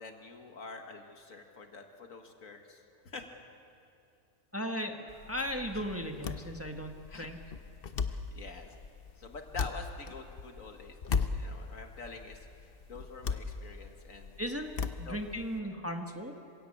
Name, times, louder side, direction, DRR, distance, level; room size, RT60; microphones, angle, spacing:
voice 1, 0.0-3.3 5.7-5.8 7.1-7.3 8.1-8.8 9.2-12.5 12.9-14.4 15.0-15.2 15.6-15.7, left 4 dB, 75° left, 4 dB, 2.2 m, -46 dB
voice 2, 4.5-7.4 14.4-14.7 15.0-16.3, equal, 10° right, 4 dB, 1.3 m, -36 dB
sound 1, 5.1-15.6, left 5 dB, 45° left, 1.0 m, -38 dB
26.5 x 16.5 x 8.6 m, 2.5 s
omnidirectional pair, 1.4 m